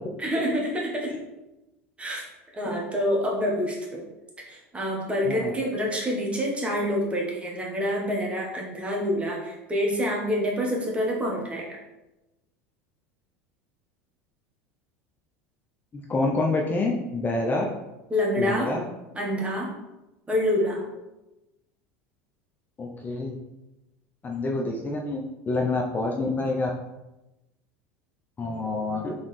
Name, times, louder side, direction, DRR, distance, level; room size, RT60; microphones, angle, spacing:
voice 1, 0.2-1.1 2.0-2.2 2.5-4.0 4.5-11.7 18.1-18.7 19.1-19.7 20.3-20.8, equal, 15° right, -2 dB, 1.3 m, -27 dB
voice 2, 16.1-17.7 18.4-18.8 22.8-23.4 24.2-26.7 28.4-29.2, left 2 dB, 25° left, 0 dB, 0.6 m, -27 dB
4.0 x 3.6 x 3.3 m, 0.98 s
hypercardioid pair, 95°, 7 cm